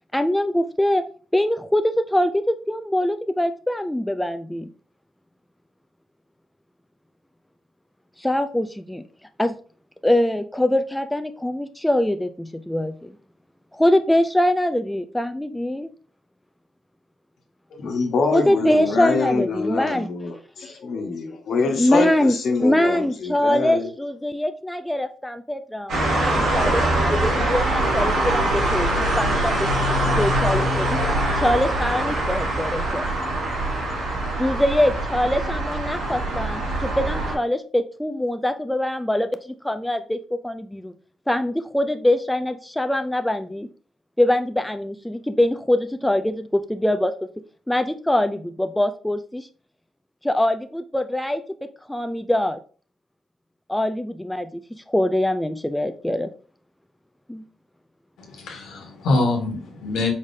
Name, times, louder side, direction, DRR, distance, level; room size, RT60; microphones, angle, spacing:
voice 1, 0.1-1.0 1.3-4.7 8.2-9.0 9.4-9.6 10.0-13.1 13.7-15.9 18.3-20.1 21.8-22.3 22.6-29.6 30.2-31.0 31.4-33.0 34.4-40.9 41.3-43.7 44.2-47.1 47.7-49.5 50.2-51.4 51.9-52.6 53.7-56.3 57.3-57.4, left 1 dB, 5° left, 0.4 m, -23 dB
voice 2, 17.7-23.9, left 4 dB, 65° left, 1.2 m, -25 dB
sound 1, 25.9-37.3, right 1 dB, 80° right, 2.3 m, -23 dB
voice 3, 58.2-60.1, left 2 dB, 90° left, 1.2 m, -24 dB
4.8 x 3.6 x 2.7 m
cardioid pair, 95°, 0 cm